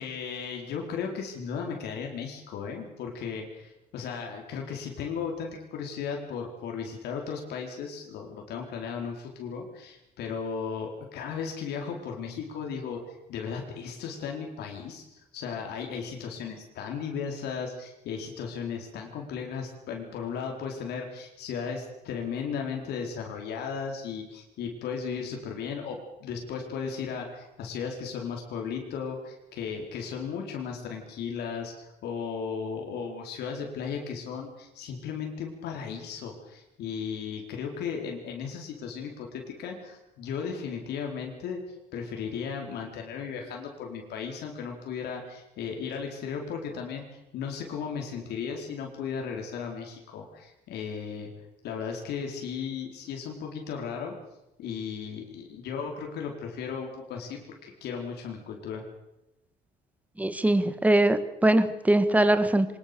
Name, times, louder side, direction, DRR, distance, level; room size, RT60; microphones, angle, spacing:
voice 1, 0.0-13.0 13.3-41.6 41.9-51.3 51.6-54.1 54.6-58.8, left 6 dB, 75° left, 1 dB, 4.6 m, -35 dB
voice 2, 60.2-62.7, right 1 dB, 10° right, 12 dB, 1.8 m, -22 dB
23.5 x 20.5 x 7.0 m, 0.92 s
cardioid pair, 110°, 17 cm